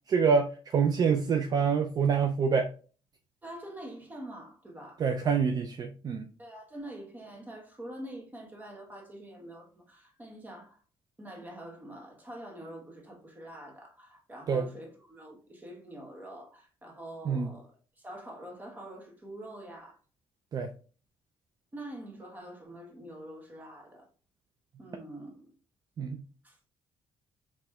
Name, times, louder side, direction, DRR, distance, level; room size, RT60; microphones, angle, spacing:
voice 1, 0.1-2.7 5.0-6.3 14.5-14.7 17.3-17.5 20.5-20.7 26.0-26.2, right 6 dB, 40° right, 0.4 m, -26 dB
voice 2, 3.4-5.0 6.4-10.8 11.2-20.0 21.7-24.1 24.8-25.5 26.4-26.6, right 1 dB, 15° right, 1.1 m, -45 dB
4.7 x 3.0 x 2.3 m
cardioid pair, 120°, 10 cm